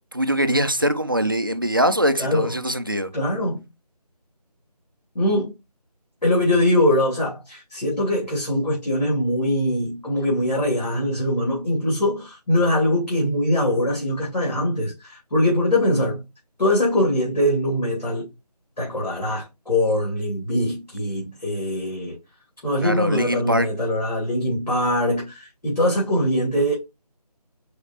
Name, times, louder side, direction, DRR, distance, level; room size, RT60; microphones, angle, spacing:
voice 1, 0.1-3.1 22.8-23.7, equal, 35° right, 0.4 m, -22 dB
voice 2, 2.2-2.5 3.1-3.6 5.1-5.5 6.2-16.2 16.6-18.3 18.8-22.2 22.6-26.7, left 1 dB, 85° left, 2.6 m, -22 dB
4.8 x 3.2 x 2.9 m
figure-of-eight pair, 170°, 21 cm